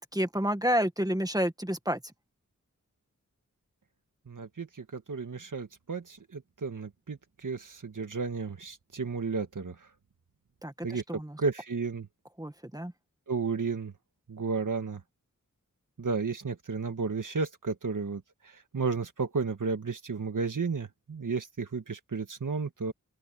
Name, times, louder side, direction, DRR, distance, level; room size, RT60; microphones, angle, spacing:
voice 1, 0.0-2.1 10.6-11.4 12.4-12.9, equal, 10° right, 1.8 m, -30 dB
voice 2, 4.3-9.8 10.8-11.0 11.4-12.1 13.3-13.9 14.3-15.0 16.0-22.9, right 4 dB, 70° right, 1.9 m, -33 dB
open air
wide cardioid pair, 65°, 32 cm